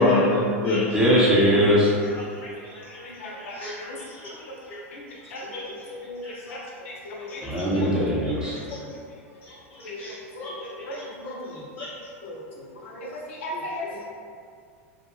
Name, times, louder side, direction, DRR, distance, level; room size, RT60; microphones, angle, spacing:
voice 1, 0.0-0.9 2.3-3.0 3.5-3.8 4.2-4.3 5.4-5.6 6.2-6.3 7.4-7.8 8.7-8.8 10.0-10.7 11.8-11.9, left 2 dB, 25° left, -6 dB, 0.4 m, -26 dB
voice 2, 0.9-1.9 7.4-8.6, equal, 10° right, -7 dB, 0.7 m, -20 dB
voice 3, 3.0-4.0 4.9-5.0 5.3-5.6 6.1-6.6 6.8-7.4 7.7-7.9 9.8-10.0 10.8-11.5 12.2-12.3 12.8-13.1 13.4-14.0, left 1 dB, 75° left, -3 dB, 0.6 m, -36 dB
2.4 x 2.2 x 3.0 m, 2.2 s
hypercardioid pair, 115°, 7 cm